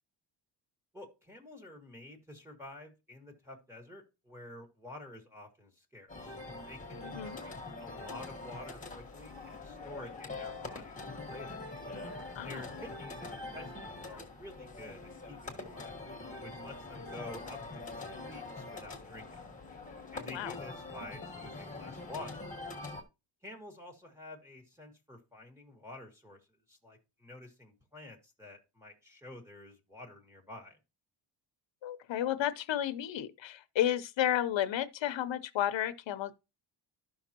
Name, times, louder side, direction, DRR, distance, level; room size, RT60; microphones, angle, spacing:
voice 1, 0.9-6.4 6.7-11.7 12.4-16.0 16.4-19.4 20.1-22.4 23.4-26.4 26.7-30.8, left 1 dB, 5° right, 1.7 m, -49 dB
sound 1, 6.1-23.0, left 3 dB, 15° left, 1.4 m, -44 dB
voice 2, 7.0-7.4 12.3-12.6 20.1-20.5 31.8-36.3, left 11 dB, 70° left, 0.8 m, -32 dB
sound 2, 8.7-14.2, right 1 dB, 50° right, 3.5 m, -60 dB
12.5 x 5.7 x 2.9 m
wide cardioid pair, 160°, 47 cm